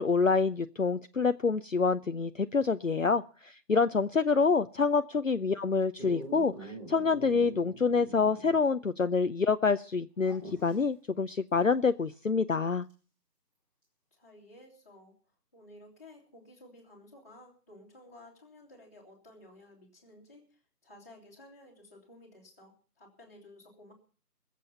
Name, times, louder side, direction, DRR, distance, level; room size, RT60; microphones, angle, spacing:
voice 1, 0.0-12.9, left 4 dB, 55° left, 9 dB, 0.6 m, -27 dB
Dog, 6.0-8.7 9.0-9.1 10.2-10.8 12.9-13.0, right 1 dB, 15° right, 3.2 m, -45 dB
voice 2, 14.1-15.1 15.5-23.9, left 1 dB, 10° left, -6 dB, 2.5 m, -54 dB
21.0 x 7.7 x 7.0 m, 0.40 s
figure-of-eight pair, 175°, 48 cm